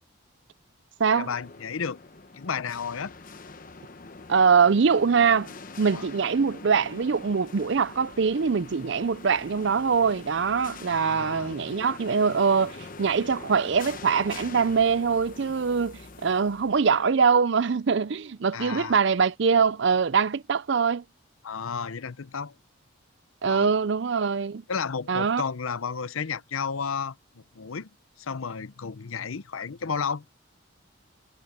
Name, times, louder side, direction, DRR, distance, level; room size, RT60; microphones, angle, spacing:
voice 1, 1.1-2.0 2.3-3.1 5.9-6.0 10.9-11.5 18.5-19.0 21.4-22.5 23.5-23.7 24.7-27.9 28.2-30.2, left 6 dB, 80° left, 0.7 m, -32 dB
sound 1, 1.2-17.3, left 3 dB, 40° left, 0.9 m, -44 dB
voice 2, 4.3-5.5 5.8-21.0 23.4-24.6 25.1-25.4, right 5 dB, 55° right, 0.5 m, -23 dB
head